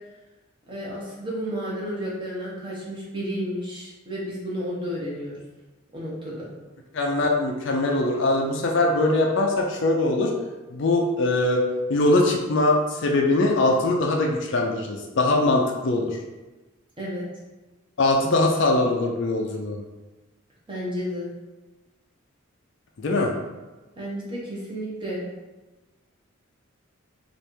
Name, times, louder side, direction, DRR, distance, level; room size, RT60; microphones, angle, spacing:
voice 1, 0.7-5.3 5.9-6.5 17.0-17.2 20.7-21.3 24.0-25.2, equal, 20° right, -6 dB, 1.0 m, -32 dB
voice 2, 6.9-10.3 10.7-11.6 11.9-16.2 18.0-19.8 23.0-23.3, left 2 dB, 55° left, 1 dB, 0.4 m, -22 dB
3.3 x 2.5 x 4.4 m, 1.2 s
head